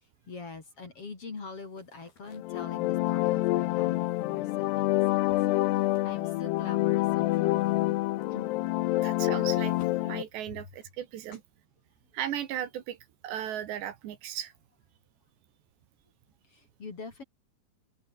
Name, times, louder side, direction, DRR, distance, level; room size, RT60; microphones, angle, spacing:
voice 1, 0.0-5.4 6.0-7.7 8.3-8.5 8.8-9.0 10.5-10.6 16.4-17.2, left 4 dB, 35° left, 3.9 m, -44 dB
sound 1, 1.4-6.9 7.2-11.1, left 5 dB, 60° left, 7.9 m, -63 dB
sound 2, 2.3-10.2, left 17 dB, 80° left, 2.7 m, -27 dB
voice 2, 9.0-9.8 10.0-11.4 12.1-13.0 13.2-14.5, right 11 dB, 70° right, 3.8 m, -36 dB
omnidirectional pair, 5.3 m